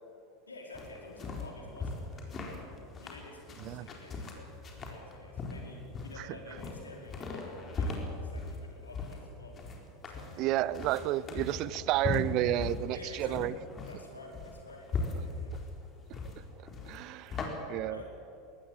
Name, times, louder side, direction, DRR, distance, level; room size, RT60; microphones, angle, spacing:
voice 1, 0.5-2.7 3.0-9.6 10.1-10.6 12.9-13.4 13.9-15.5 17.1-17.4 17.9-18.1, left 2 dB, 80° left, 0 dB, 4.8 m, -50 dB
sound 1, 0.7-17.5, left 3 dB, 30° left, 4.3 m, -39 dB
voice 2, 10.4-13.5 16.1-16.2 16.5-18.0, right 14 dB, 45° right, 19 dB, 0.6 m, -31 dB
22.0 x 17.5 x 8.8 m, 2.7 s
figure-of-eight pair, 75°, 0 cm